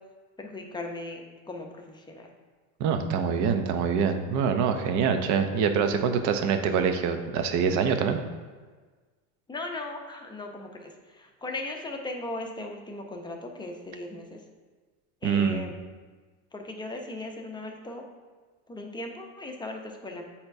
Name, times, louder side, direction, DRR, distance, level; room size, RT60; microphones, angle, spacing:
voice 1, 0.4-2.3 9.5-14.4 15.2-15.7 16.5-18.1 18.7-20.2, left 2 dB, 10° left, 2 dB, 0.6 m, -38 dB
voice 2, 2.8-8.2 15.2-15.6, right 6 dB, 50° right, 7 dB, 0.7 m, -25 dB
8.4 x 4.3 x 2.6 m, 1.4 s
supercardioid pair, 120°, 38 cm